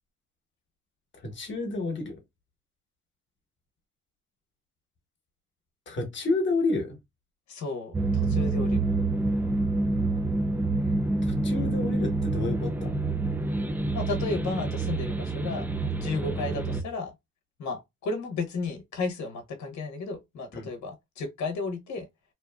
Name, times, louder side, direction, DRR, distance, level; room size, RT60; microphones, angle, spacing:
voice 1, 1.2-2.2 5.9-7.0 11.2-13.0 20.5-20.7, left 3 dB, 40° left, 1.1 m, -30 dB
voice 2, 7.5-8.8 13.9-15.7 16.0-17.1 17.6-22.1, left 3 dB, 65° left, 0.9 m, -33 dB
sound 1, 7.9-16.8, right 2 dB, 5° right, 0.3 m, -27 dB
2.7 x 2.4 x 2.2 m
cardioid pair, 90°, 30 cm